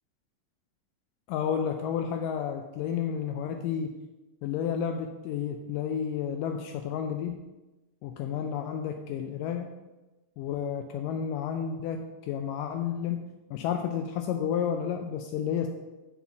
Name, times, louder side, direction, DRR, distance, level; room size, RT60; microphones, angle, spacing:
voice 1, 1.3-4.0 4.4-7.4 8.0-9.7 10.4-13.2 13.5-15.7, left 8 dB, 80° left, 5 dB, 2.1 m, -31 dB
7.1 x 4.3 x 6.8 m, 1.1 s
omnidirectional pair, 3.9 m